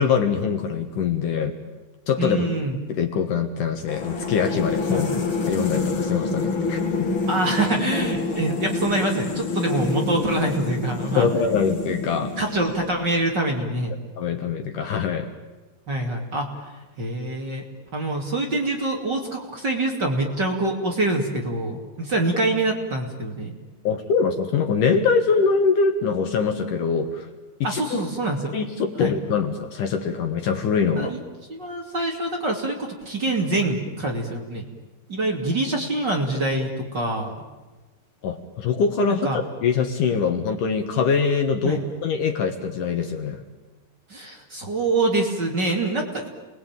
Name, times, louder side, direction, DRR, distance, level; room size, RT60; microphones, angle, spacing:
voice 1, 0.0-1.6 2.1-2.5 2.9-5.1 5.5-7.1 11.2-12.3 14.2-15.3 23.8-27.3 27.6-28.0 28.5-31.1 38.2-43.4, left 5 dB, 60° left, 6 dB, 2.7 m, -23 dB
voice 2, 2.2-2.7 4.9-5.2 7.3-11.3 12.4-13.9 15.9-16.5 17.0-17.6 17.9-23.5 27.6-28.4 29.0-29.1 31.0-31.2 31.5-34.7 35.1-37.3 39.1-39.4 41.6-41.9 44.1-46.3, right 2 dB, 30° right, 1 dB, 2.8 m, -25 dB
sound 1, 3.9-13.2, left 4 dB, 35° left, 2.5 m, -27 dB
29.0 x 21.0 x 9.1 m, 1.2 s
omnidirectional pair, 4.6 m